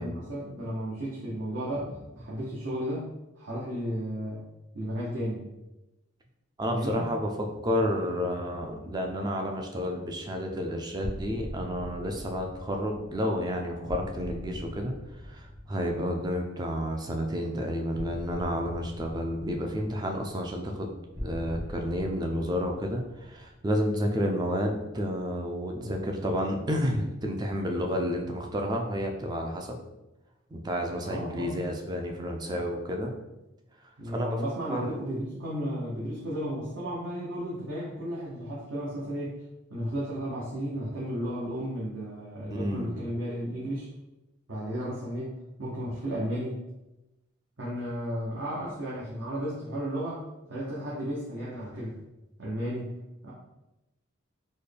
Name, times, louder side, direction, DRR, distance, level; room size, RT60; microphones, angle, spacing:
voice 1, 0.0-4.4 4.7-5.5 6.7-7.1 31.0-31.6 34.0-39.3 39.7-43.9 44.5-46.6 47.6-50.2 50.5-52.0 52.4-52.9 53.2-53.3, equal, 65° right, -7 dB, 0.8 m, -34 dB
voice 2, 6.6-7.3 7.6-14.9 15.3-29.8 30.5-33.1 34.1-34.3 34.7-35.0 42.5-43.0, equal, 20° right, 2 dB, 0.3 m, -30 dB
sound 1, 11.0-16.8 17.9-24.2, equal, 40° right, 1.1 m, -42 dB
4.2 x 2.2 x 3.3 m, 0.98 s
head